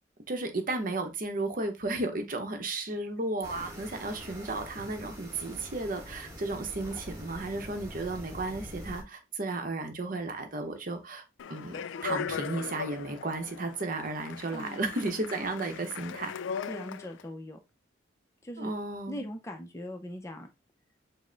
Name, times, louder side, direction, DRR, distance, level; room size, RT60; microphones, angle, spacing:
voice 1, 0.3-16.3 18.6-19.3, right 2 dB, 45° right, 6 dB, 0.8 m, -34 dB
sound 1, 3.4-9.0, equal, 15° right, 1.2 m, -44 dB
Speech, 11.4-17.2, left 7 dB, 75° left, 0.3 m, -39 dB
voice 2, 14.5-14.9 16.7-17.6 18.4-18.7 19.1-20.5, equal, 15° left, 4 dB, 0.5 m, -40 dB
5.3 x 2.1 x 3.8 m, 0.24 s
head